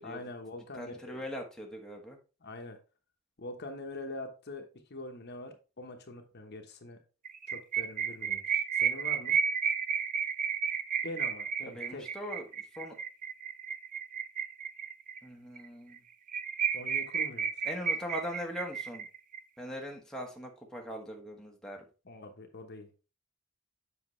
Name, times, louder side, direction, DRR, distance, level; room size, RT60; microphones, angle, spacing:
voice 1, 0.0-1.2 2.4-2.8 3.4-7.0 7.5-9.3 11.0-12.1 16.7-17.5 22.1-22.9, left 2 dB, 50° left, 5 dB, 1.0 m, -44 dB
voice 2, 0.7-2.2 11.7-13.0 15.2-16.0 17.6-19.1 19.6-21.8, equal, 5° left, 0 dB, 1.1 m, -41 dB
sound 1, 7.3-15.2 15.6-15.7 15.9-16.0 16.3-19.4, right 7 dB, 40° right, 0.5 m, -32 dB
7.6 x 5.9 x 3.1 m, 0.32 s
head